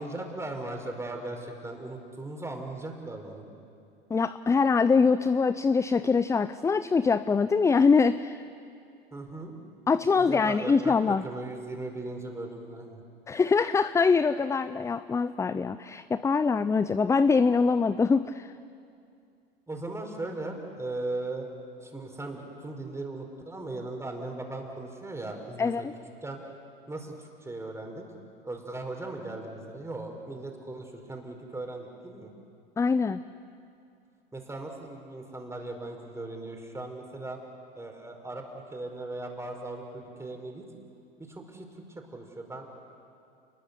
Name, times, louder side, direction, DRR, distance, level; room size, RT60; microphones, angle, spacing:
voice 1, 0.0-3.4 9.1-9.5 10.2-13.0 19.7-21.5 21.8-25.9 26.2-26.4 26.9-28.0 28.4-32.3 34.3-37.4 37.8-40.6 41.2-42.7, right 2 dB, 10° right, 3 dB, 4.8 m, -38 dB
voice 2, 4.1-8.4 9.9-11.2 13.3-18.5 25.6-25.9 32.8-33.2, left 5 dB, 10° left, 14 dB, 0.5 m, -24 dB
30.0 x 21.5 x 6.9 m, 2.4 s
hypercardioid pair, 85°, 29 cm